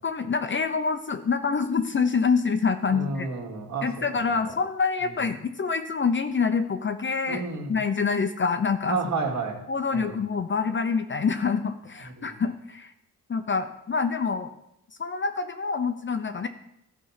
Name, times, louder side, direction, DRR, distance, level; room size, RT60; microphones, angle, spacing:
voice 1, 0.0-3.3 3.8-7.4 7.7-9.0 9.7-12.9 13.3-14.5 15.0-16.5, left 5 dB, 30° left, 8 dB, 0.7 m, -26 dB
voice 2, 2.9-4.0 5.0-5.2 7.3-7.8 8.9-9.6 9.9-10.2 12.2-12.3, right 4 dB, 50° right, 0 dB, 2.4 m, -31 dB
13.5 x 4.7 x 5.7 m, 0.82 s
cardioid pair, 110°, 37 cm